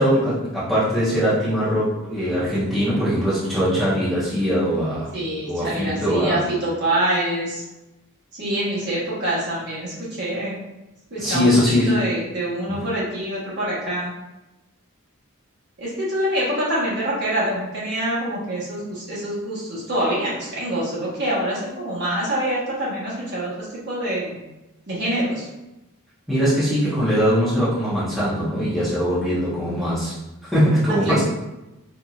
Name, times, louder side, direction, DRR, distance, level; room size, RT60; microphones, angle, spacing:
voice 1, 0.0-5.1 5.5-6.4 11.2-12.0 12.6-12.8 26.3-31.2, equal, ahead, -11 dB, 0.8 m, -21 dB
voice 2, 5.1-7.6 8.3-10.6 11.1-14.1 15.8-24.4 24.9-25.5 30.9-31.2, right 1 dB, 50° right, -7 dB, 1.3 m, -25 dB
4.2 x 2.6 x 2.4 m, 0.97 s
head